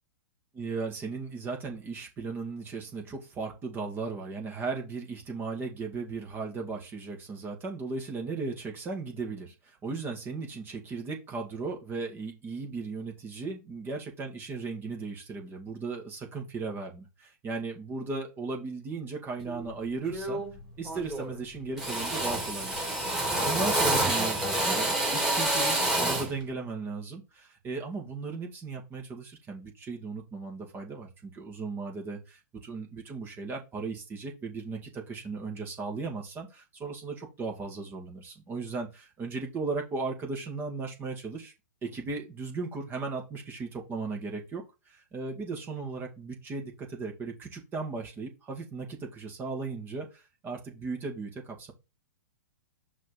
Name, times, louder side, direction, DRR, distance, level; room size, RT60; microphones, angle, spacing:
voice 1, 0.6-20.4 20.8-41.5 41.8-51.7, right 4 dB, 20° right, 1 dB, 2.2 m, -36 dB
Drill, 19.5-19.7 20.1-20.6 20.9-21.4 21.8-26.4, right 1 dB, 5° right, 2.7 m, -28 dB
5.7 x 4.7 x 4.1 m, 0.28 s
figure-of-eight pair, 110°, 9 cm